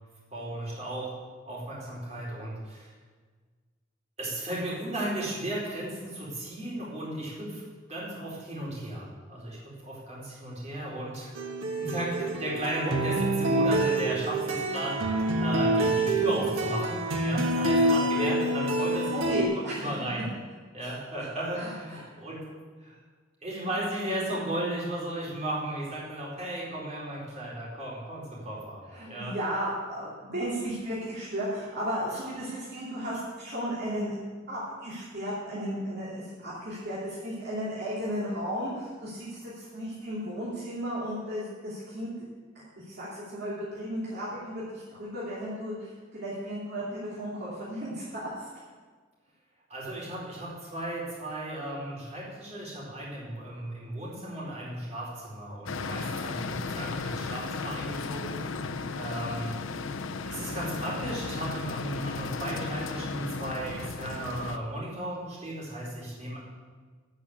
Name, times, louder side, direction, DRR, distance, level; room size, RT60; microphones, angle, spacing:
voice 1, 0.3-2.9 4.2-7.6 7.9-11.3 11.8-14.9 15.4-20.2 20.7-22.4 22.8-23.0 23.4-29.4 49.7-59.5 60.3-66.4, right 1 dB, 35° right, -6 dB, 4.3 m, -35 dB
sound 1, 11.4-19.4, right 1 dB, 80° right, 1.4 m, -27 dB
voice 2, 19.1-19.9 20.8-21.0 21.6-22.0 28.9-34.2 34.5-42.1 42.5-48.5, equal, 55° right, -8 dB, 2.8 m, -34 dB
sound 2, 55.7-64.6, left 4 dB, 70° left, 0.6 m, -35 dB
12.5 x 6.2 x 8.2 m, 1.5 s
head